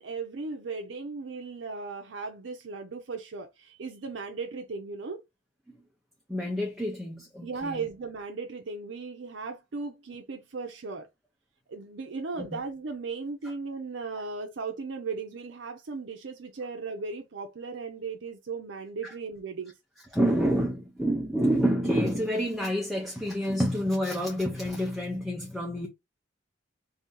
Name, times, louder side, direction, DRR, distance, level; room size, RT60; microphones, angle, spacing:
voice 1, 0.0-5.2 7.4-11.1 11.7-19.7, right 4 dB, 75° right, 0.6 m, -37 dB
voice 2, 6.3-7.9 12.3-12.6 20.1-25.9, equal, ahead, 0.6 m, -28 dB
2.7 x 2.7 x 3.7 m
head